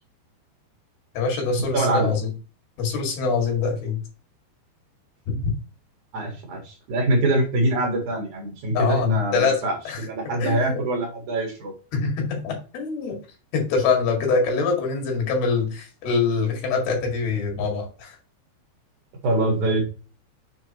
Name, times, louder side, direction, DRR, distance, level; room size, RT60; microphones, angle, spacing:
voice 1, 1.1-2.3 2.8-4.0 5.3-5.5 8.7-10.1 10.4-10.8 11.9-13.2 13.5-18.2, left 4 dB, 60° left, 1 dB, 3.9 m, -24 dB
voice 2, 1.7-2.1 6.1-11.7 19.2-19.8, right 2 dB, 55° right, 1 dB, 2.4 m, -24 dB
7.2 x 5.8 x 3.0 m, 0.34 s
omnidirectional pair, 5.3 m